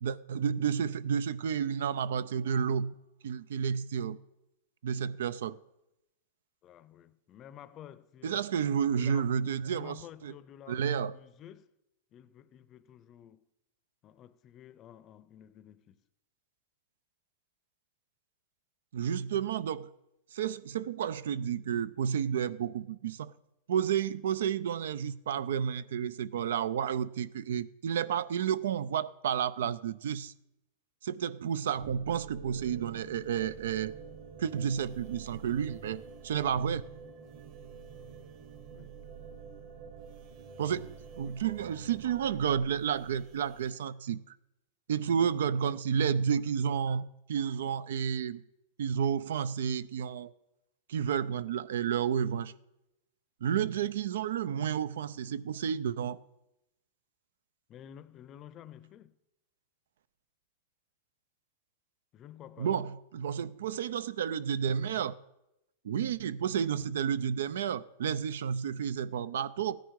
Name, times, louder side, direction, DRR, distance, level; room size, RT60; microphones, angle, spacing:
voice 1, 0.0-2.9 3.2-4.2 4.8-5.6 8.2-10.0 10.2-10.3 10.7-11.1 18.9-19.9 20.3-23.3 23.7-30.3 31.0-33.9 34.4-36.8 40.6-44.3 44.9-48.4 48.8-50.3 50.9-52.5 53.4-56.2 62.6-65.1 65.8-69.8, right 8 dB, 90° right, 0.6 m, -31 dB
voice 2, 6.6-8.5 8.9-11.7 12.1-13.4 14.0-16.0 38.7-39.0 41.2-41.4 45.1-45.3 57.7-59.2 62.1-62.9, left 10 dB, 30° left, 0.6 m, -51 dB
sound 1, 31.7-43.7, right 6 dB, 45° right, 1.4 m, -48 dB
16.0 x 10.0 x 4.8 m
supercardioid pair, 155°, 0 cm